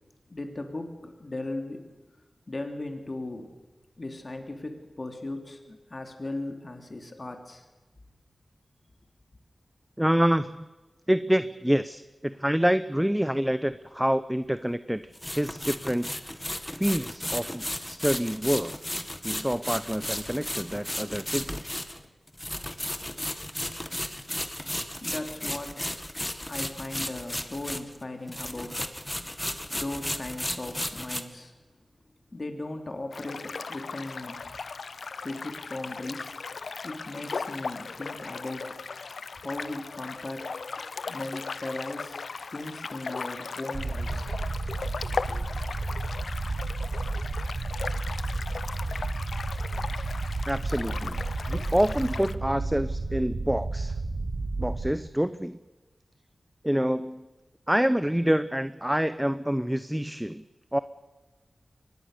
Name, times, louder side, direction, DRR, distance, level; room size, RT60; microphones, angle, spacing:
voice 1, 0.3-1.9 2.5-3.5 4.0-7.7 23.0-23.1 24.0-25.9 26.4-31.5 32.3-34.4 35.2-36.3 36.8-38.7 39.4-40.5 40.9-42.2 42.5-44.4 45.3-45.4, left 2 dB, 45° left, 5 dB, 3.2 m, -38 dB
voice 2, 10.0-10.7 11.1-15.0 15.3-18.8 19.2-21.6 50.5-51.2 51.5-54.0 54.6-55.6 56.6-57.3 57.7-60.4 60.7-60.8, equal, 5° right, 13 dB, 0.8 m, -27 dB
sound 1, 15.1-28.0 28.3-31.2, left 1 dB, 15° left, 1.8 m, -34 dB
sound 2, 33.1-52.4, left 4 dB, 85° left, 0.7 m, -37 dB
sound 3, 43.7-54.9, right 3 dB, 60° right, 2.6 m, -32 dB
23.5 x 19.5 x 6.8 m, 1.2 s
wide cardioid pair, 60°, 0 cm